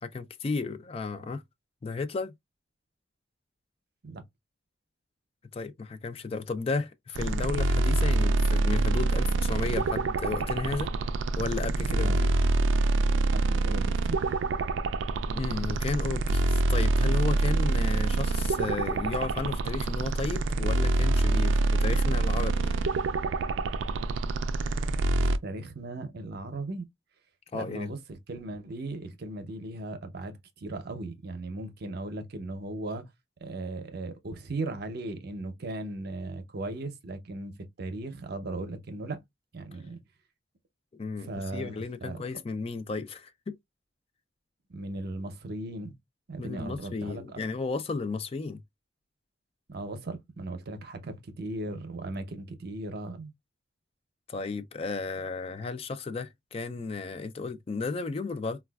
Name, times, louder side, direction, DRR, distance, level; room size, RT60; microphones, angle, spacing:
voice 1, 0.0-1.4 1.8-2.3 5.5-10.9 11.4-12.3 15.3-22.8 27.5-27.9 40.9-43.6 46.4-48.6 54.3-58.6, left 4 dB, 30° left, 0.4 m, -33 dB
sound 1, 7.1-25.4, right 2 dB, 90° right, 0.4 m, -26 dB
voice 2, 11.8-12.3 13.3-14.3 25.4-26.8 27.5-33.1 33.4-37.5 37.8-39.2 39.5-40.0 41.2-42.2 44.7-45.9 46.3-47.4 49.7-53.3, right 2 dB, 60° right, 0.7 m, -37 dB
4.0 x 2.3 x 2.2 m
head